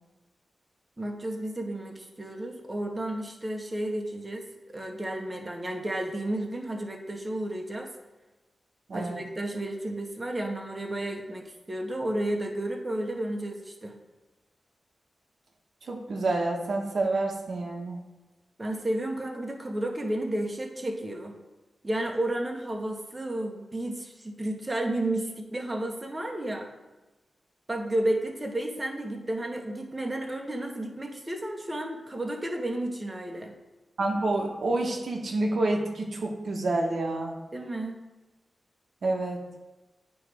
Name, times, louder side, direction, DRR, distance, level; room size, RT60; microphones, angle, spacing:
voice 1, 1.0-7.9 8.9-14.0 18.6-21.4 21.8-26.7 27.7-33.6 37.5-38.0, right 1 dB, 25° right, 2 dB, 1.0 m, -32 dB
voice 2, 15.9-18.0 34.0-37.4 39.0-39.4, right 2 dB, 70° right, 1 dB, 0.9 m, -28 dB
9.2 x 3.1 x 4.7 m, 1.1 s
wide cardioid pair, 80°, 0 cm